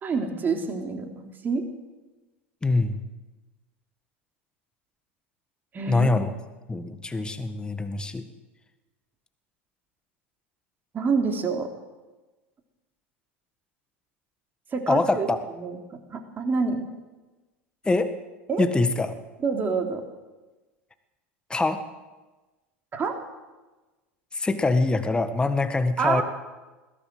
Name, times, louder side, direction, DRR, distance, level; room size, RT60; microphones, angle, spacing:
voice 1, 0.0-1.7 5.7-6.1 10.9-11.7 14.7-15.3 15.6-15.8 16.1-16.8 18.5-18.7 19.4-20.0 22.9-23.1 26.0-26.2, right 4 dB, 30° right, 3 dB, 3.6 m, -27 dB
voice 2, 2.6-3.0 5.9-6.3 6.7-8.2 14.9-15.4 17.8-18.1 18.6-19.1 21.5-21.8 24.3-26.2, left 3 dB, 15° left, 9 dB, 1.7 m, -24 dB
21.0 x 15.5 x 7.9 m, 1.2 s
hypercardioid pair, 80°, 7 cm